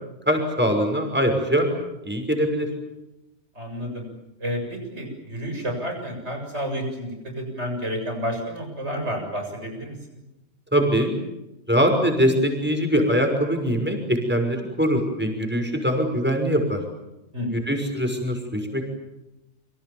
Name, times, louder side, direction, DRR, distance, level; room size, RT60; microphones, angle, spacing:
voice 1, 0.3-1.7 2.0-2.7 10.7-11.1 11.7-16.8 17.5-18.8, equal, 10° right, 4 dB, 6.0 m, -22 dB
voice 2, 3.5-4.0 4.4-10.2 17.3-17.7, equal, 90° right, 3 dB, 7.7 m, -30 dB
29.0 x 25.5 x 7.3 m, 0.95 s
omnidirectional pair, 1.1 m